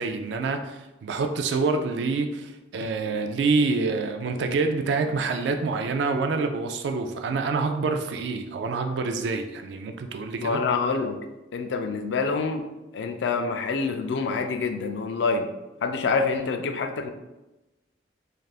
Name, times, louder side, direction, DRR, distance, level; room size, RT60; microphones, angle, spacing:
voice 1, 0.0-10.6, right 4 dB, 75° right, 6 dB, 0.3 m, -27 dB
voice 2, 10.4-11.2 11.5-12.7 12.9-15.5 15.8-17.1, left 4 dB, 75° left, 7 dB, 0.3 m, -26 dB
3.3 x 2.4 x 2.4 m, 1.0 s
head